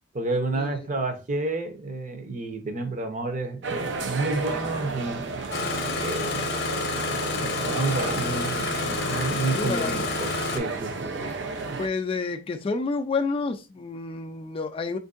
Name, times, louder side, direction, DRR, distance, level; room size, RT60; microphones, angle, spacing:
voice 1, 0.1-5.2 6.0-6.8 7.4-11.4 11.7-11.8, right 3 dB, 45° right, 0.7 m, -30 dB
sound 1, 3.6-11.9, right 3 dB, 80° right, 0.6 m, -33 dB
Engine starting, 5.5-10.6, left 3 dB, 60° left, 0.7 m, -29 dB
voice 2, 9.5-10.1 11.8-15.0, left 4 dB, 30° left, 0.3 m, -29 dB
4.3 x 2.6 x 2.4 m
head